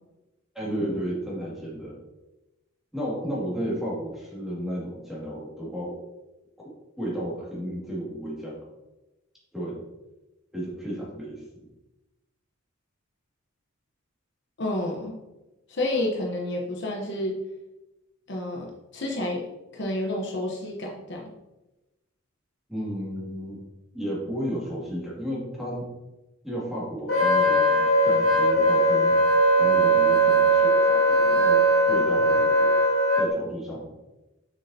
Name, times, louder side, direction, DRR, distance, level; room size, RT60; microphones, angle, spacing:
voice 1, 0.5-2.0 2.9-6.0 6.6-6.7 7.0-8.6 9.5-9.8 10.5-11.4 22.7-23.6 23.9-25.8 26.4-29.1 29.6-32.7 33.2-33.9, equal, ahead, -6 dB, 2.0 m, -33 dB
voice 2, 14.6-15.2 15.7-17.4 18.3-21.2, left 1 dB, 55° left, -1 dB, 0.9 m, -30 dB
Wind instrument woodwind instrument, 27.1-33.3, right 1 dB, 80° left, 2.2 m, -20 dB
6.5 x 6.4 x 2.8 m, 1.0 s
head